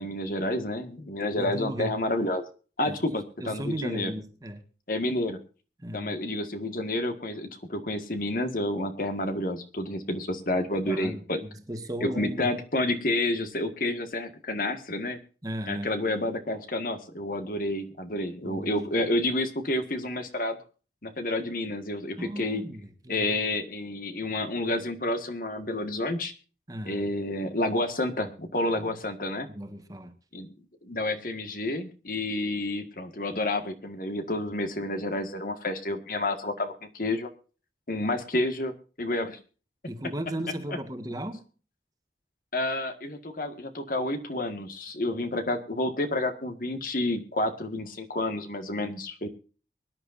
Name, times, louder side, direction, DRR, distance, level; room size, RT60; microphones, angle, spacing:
voice 1, 0.0-2.5 2.8-4.1 4.9-5.4 5.9-11.4 12.0-15.2 15.7-20.6 21.0-22.6 23.1-26.3 26.8-29.5 30.3-30.5 30.8-37.3 37.9-38.7 39.0-39.4 42.5-49.3, left 1 dB, 50° left, 7 dB, 1.8 m, -29 dB
voice 2, 1.4-1.9 2.8-3.0 3.4-4.6 5.8-6.1 10.8-12.5 15.4-16.0 18.4-18.8 22.2-23.4 26.7-27.1 28.7-28.9 29.5-30.1 39.9-41.5, right 1 dB, 20° right, 7 dB, 1.5 m, -36 dB
23.5 x 10.5 x 2.6 m, 0.37 s
head